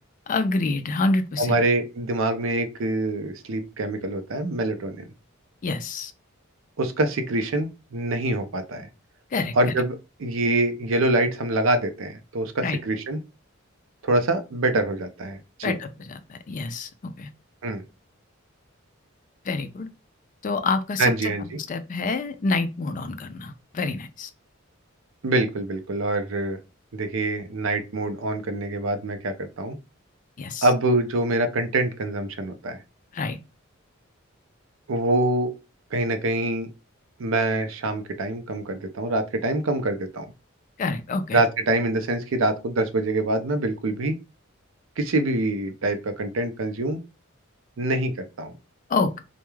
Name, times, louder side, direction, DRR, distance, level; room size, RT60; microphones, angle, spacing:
voice 1, 0.3-1.6 5.6-6.1 9.3-9.7 12.6-12.8 15.6-17.3 19.5-19.9 20.4-21.3 21.7-24.3 30.4-30.7 33.1-33.4 40.8-41.4 48.9-49.1, left 3 dB, 40° left, 0.3 m, -27 dB
voice 2, 1.4-5.0 6.8-8.9 9.5-13.2 14.0-15.8 17.6-17.8 21.0-21.6 25.2-26.6 26.9-29.8 30.6-32.8 34.9-35.5 35.9-36.7 37.2-40.2 41.3-44.2 45.0-47.0 47.8-48.5, right 2 dB, 70° right, 0.5 m, -25 dB
2.2 x 2.2 x 3.0 m
head